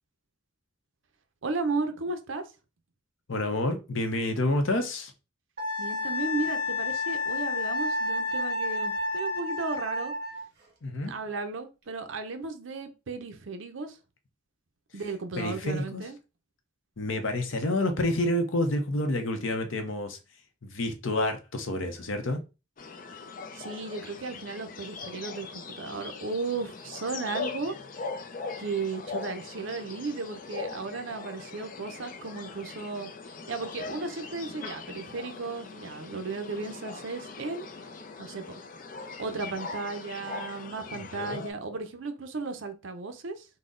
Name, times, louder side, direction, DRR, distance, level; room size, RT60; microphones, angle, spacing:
voice 1, 1.4-2.4 5.8-10.1 11.1-14.0 14.9-16.1 23.5-27.7 28.6-33.1 33.5-37.7 38.2-38.6 39.2-43.5, right 3 dB, 70° right, 0.6 m, -35 dB
voice 2, 3.3-5.1 10.8-11.1 15.4-16.1 17.0-20.2 20.6-22.4 40.9-41.4, left 1 dB, 75° left, 0.8 m, -29 dB
Wind instrument woodwind instrument, 5.6-10.4, left 2 dB, 50° right, 1.2 m, -30 dB
sound 1, 22.8-41.5, left 4 dB, 40° left, 0.4 m, -41 dB
3.9 x 2.1 x 3.7 m
head